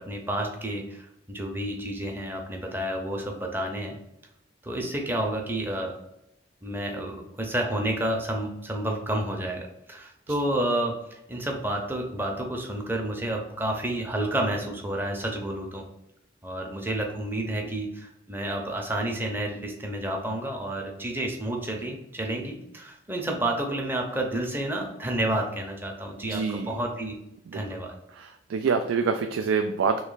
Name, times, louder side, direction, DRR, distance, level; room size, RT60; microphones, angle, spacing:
voice 1, 0.0-4.0 4.6-6.0 6.6-15.8 16.4-27.2 27.5-27.9, right 1 dB, 10° right, 1 dB, 0.6 m, -30 dB
voice 2, 26.2-26.7 27.5-27.6 28.2-30.0, right 5 dB, 90° right, 6 dB, 0.3 m, -26 dB
3.2 x 3.1 x 3.9 m, 0.85 s
head